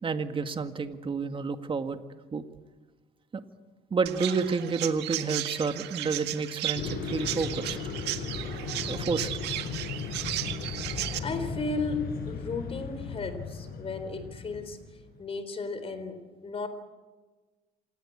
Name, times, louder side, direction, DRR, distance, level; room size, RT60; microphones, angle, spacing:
voice 1, 0.0-2.0 2.3-2.4 3.3-3.4 3.9-7.8 8.9-9.3, right 5 dB, 30° right, 8 dB, 1.8 m, -30 dB
Chirp tweet, 4.1-11.2, right 14 dB, 80° right, 1.8 m, -35 dB
sound 1, 6.7-15.1, left 5 dB, 60° left, 6.6 m, -36 dB
voice 2, 11.0-14.8 15.2-16.7, left 3 dB, 35° left, 11 dB, 3.9 m, -34 dB
27.0 x 19.0 x 8.6 m, 1.3 s
cardioid pair, 110°, 17 cm